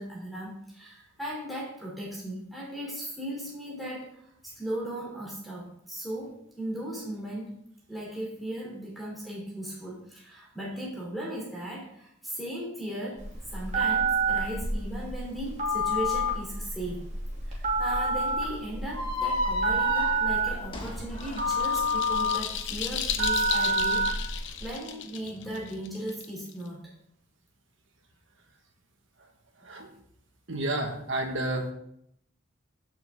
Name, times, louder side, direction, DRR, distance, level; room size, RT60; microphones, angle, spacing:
voice 1, 0.0-7.5 7.9-17.1 17.4-26.9, right 1 dB, ahead, -6 dB, 3.2 m, -37 dB
Telephone, 13.2-24.6, right 2 dB, 35° right, 2.8 m, -28 dB
sound 1, 18.9-22.1, left 2 dB, 25° left, 1.4 m, -33 dB
sound 2, 20.9-26.7, left 9 dB, 60° left, 0.9 m, -35 dB
voice 2, 30.5-31.7, right 1 dB, 65° right, 3 dB, 1.7 m, -30 dB
14.5 x 6.1 x 3.8 m, 0.72 s
head